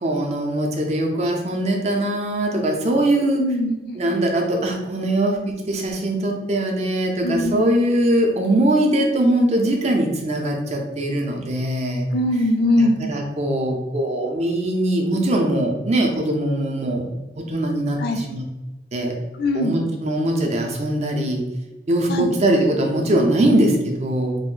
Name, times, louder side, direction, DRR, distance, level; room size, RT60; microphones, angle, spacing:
voice 1, 0.0-3.4 3.9-12.1 12.8-18.4 18.9-19.2 19.5-21.5 21.9-24.4, right 1 dB, 40° right, 2 dB, 0.5 m, -21 dB
voice 2, 3.4-4.0 7.2-7.5 12.1-13.0 18.0-18.2 19.4-19.8 22.1-22.3, left 1 dB, 65° left, 5 dB, 0.4 m, -21 dB
2.5 x 2.0 x 3.7 m, 1.1 s
head